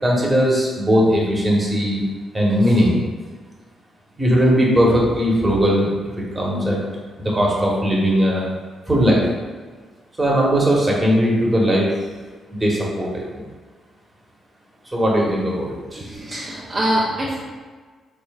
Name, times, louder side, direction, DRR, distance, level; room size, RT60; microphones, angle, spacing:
voice 1, 0.0-2.0 2.3-3.0 4.2-5.8 6.2-6.8 7.2-8.4 8.9-9.3 10.2-11.9 12.5-13.4 14.9-16.1, equal, 25° right, -3 dB, 1.3 m, -18 dB
voice 2, 16.0-17.3, right 1 dB, 40° right, -7 dB, 0.8 m, -24 dB
3.9 x 3.4 x 2.4 m, 1.4 s
hypercardioid pair, 45°, 0 cm